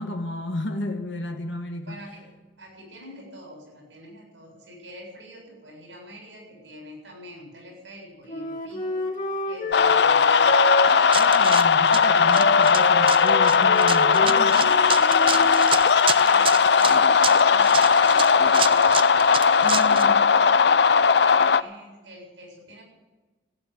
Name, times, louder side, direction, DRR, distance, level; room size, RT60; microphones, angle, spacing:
voice 1, 0.0-2.0 11.1-14.6 19.6-20.3, left 2 dB, 85° left, 4 dB, 1.7 m, -32 dB
voice 2, 1.8-2.2 2.6-9.0 9.4-10.5 14.4-15.7 16.1-19.0 19.4-22.8, equal, 85° right, 1 dB, 7.4 m, -44 dB
Wind instrument woodwind instrument, 8.3-15.7, left 1 dB, 45° left, 2.8 m, -29 dB
sound 1, 9.7-21.6, left 5 dB, 65° left, 0.5 m, -18 dB
Run, 10.9-20.1, right 7 dB, 30° right, 0.6 m, -30 dB
16.0 x 9.3 x 9.8 m, 1.2 s
head